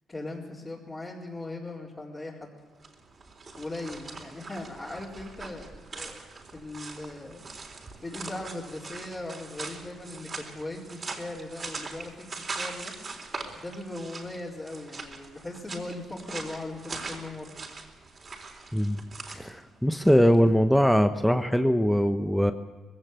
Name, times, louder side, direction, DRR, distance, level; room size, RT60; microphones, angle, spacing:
voice 1, 0.1-2.5 3.5-6.2 6.5-7.5 8.0-12.9 13.6-17.6, left 2 dB, 20° left, -6 dB, 4.2 m, -39 dB
sound 1, 2.7-20.4, right 3 dB, 40° right, 3.9 m, -41 dB
voice 2, 19.3-22.5, equal, ahead, 8 dB, 1.0 m, -22 dB
19.5 x 16.5 x 8.2 m, 1.4 s
cardioid pair, 90°, 0 cm